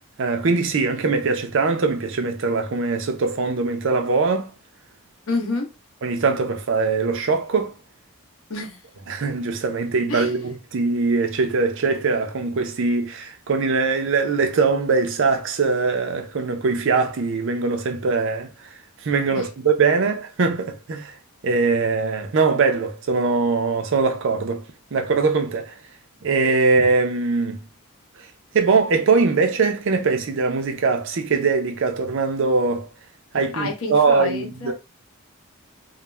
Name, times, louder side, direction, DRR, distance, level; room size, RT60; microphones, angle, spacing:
voice 1, 0.2-4.5 6.0-7.7 9.1-18.5 19.0-21.1 21.4-24.6 24.9-25.7 26.2-27.6 28.5-32.9 33.3-34.7, right 4 dB, 60° right, 0.5 m, -21 dB
voice 2, 5.3-5.7 8.5-8.8 10.1-10.3 19.3-19.5 33.3-34.7, left 2 dB, 70° left, 0.8 m, -28 dB
2.3 x 2.1 x 3.1 m
head